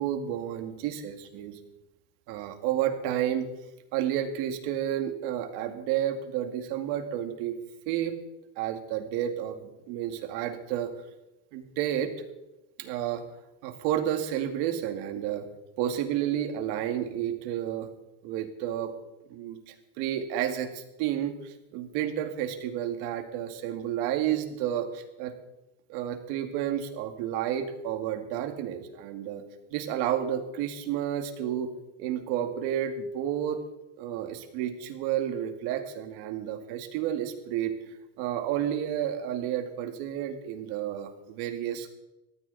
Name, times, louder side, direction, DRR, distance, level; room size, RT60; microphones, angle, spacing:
voice 1, 0.0-1.6 2.3-3.5 3.9-7.6 7.9-8.2 8.6-10.9 11.5-12.1 12.8-13.3 13.6-15.5 15.8-17.9 18.2-18.9 19.3-25.3 25.9-29.4 29.7-31.7 32.0-33.6 34.0-37.7 38.2-41.9, right 10 dB, 70° right, 7 dB, 2.3 m, -31 dB
18.5 x 14.0 x 4.2 m, 0.96 s
supercardioid pair, 125°, 40 cm